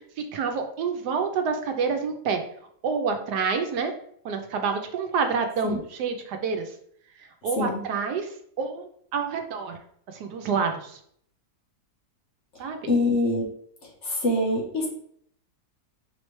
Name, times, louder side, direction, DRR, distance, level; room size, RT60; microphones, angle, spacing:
voice 1, 0.0-2.4 2.8-3.9 4.2-6.7 7.2-8.3 8.6-9.8 10.1-11.0 12.6-12.8, right 5 dB, 80° right, 5 dB, 1.2 m, -28 dB
voice 2, 12.6-13.5 14.0-14.9, left 2 dB, 50° left, -1 dB, 1.1 m, -25 dB
5.0 x 3.2 x 3.1 m, 0.65 s
omnidirectional pair, 1.8 m